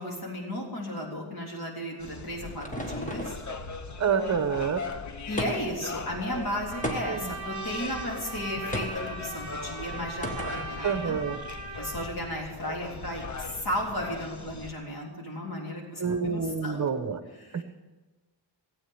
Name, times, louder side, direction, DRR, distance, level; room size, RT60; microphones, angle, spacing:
voice 1, 0.0-3.4 5.3-11.2 11.8-16.9 17.3-17.6, equal, 55° left, -2 dB, 3.6 m, -34 dB
sound 1, 1.9-3.5 5.4-5.9 6.8-7.4 8.7-9.1 10.2-10.7, equal, 15° left, 1.5 m, -34 dB
sound 2, 2.0-14.7, left 4 dB, 40° left, 0.9 m, -40 dB
voice 2, 4.0-4.8 7.1-7.3 10.8-11.4 16.0-17.2 17.5-17.6, right 6 dB, 40° right, 10 dB, 0.9 m, -28 dB
Trumpet, 6.7-12.1, right 3 dB, 20° right, 4.2 m, -39 dB
17.5 x 8.6 x 7.1 m, 1.2 s
wide cardioid pair, 170°, 44 cm